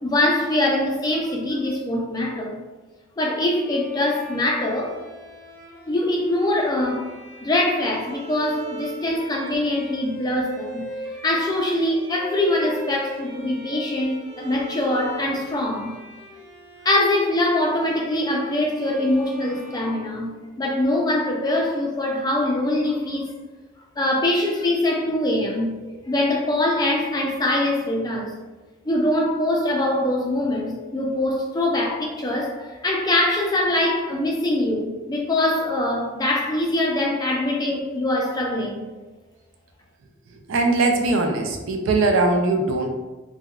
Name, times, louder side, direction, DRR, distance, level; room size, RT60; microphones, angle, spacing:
voice 1, 0.0-2.6 3.2-5.0 5.9-7.1 7.4-10.9 11.2-15.9 16.8-23.3 24.0-28.4 28.9-38.9, left 1 dB, 20° left, -1 dB, 0.3 m, -23 dB
Bowed string instrument, 3.5-20.7, right 1 dB, 15° right, 1.1 m, -41 dB
voice 2, 40.5-42.9, right 2 dB, 65° right, 3 dB, 0.4 m, -20 dB
3.6 x 2.1 x 2.3 m, 1.2 s
head